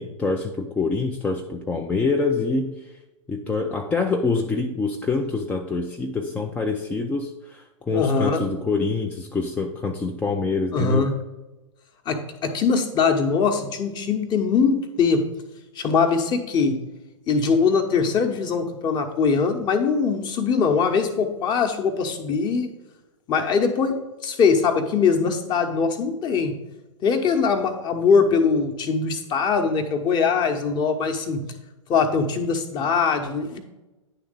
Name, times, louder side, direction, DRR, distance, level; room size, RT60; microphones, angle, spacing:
voice 1, 0.0-2.9 3.3-11.1, left 4 dB, 10° left, 2 dB, 0.4 m, -25 dB
voice 2, 7.9-8.4 10.7-11.2 12.1-15.3 15.8-16.8 17.3-22.7 23.3-26.6 27.0-31.5 31.9-33.6, left 5 dB, 25° left, 6 dB, 1.0 m, -22 dB
9.9 x 3.5 x 5.1 m, 1.0 s
figure-of-eight pair, 105°, 16 cm